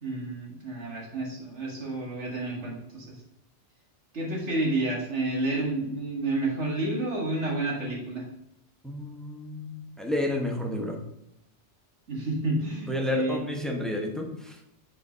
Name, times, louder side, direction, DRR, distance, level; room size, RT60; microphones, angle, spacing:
voice 1, 0.0-3.1 4.1-8.2 12.1-13.4, right 2 dB, 75° right, -2 dB, 2.2 m, -30 dB
voice 2, 8.8-11.0 12.8-14.6, left 1 dB, ahead, 1 dB, 0.9 m, -31 dB
6.8 x 4.0 x 5.0 m, 0.82 s
omnidirectional pair, 1.2 m